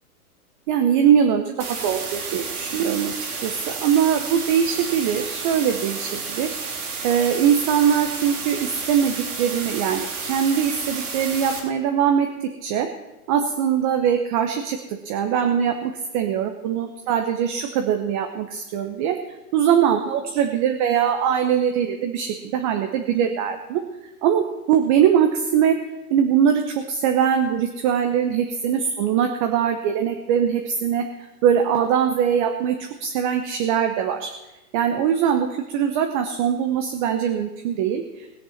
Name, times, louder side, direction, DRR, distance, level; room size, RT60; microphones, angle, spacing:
voice 1, 0.7-3.1 3.4-6.6 7.0-12.3 12.6-12.9 13.3-19.2 19.5-23.8 24.2-25.8 26.1-31.1 31.4-34.3 34.7-38.3, right 8 dB, 25° right, 5 dB, 0.8 m, -22 dB
sound 1, 1.6-11.6, right 5 dB, 75° right, 3.5 m, -31 dB
19.5 x 6.8 x 5.7 m, 0.99 s
hypercardioid pair, 140°, 46 cm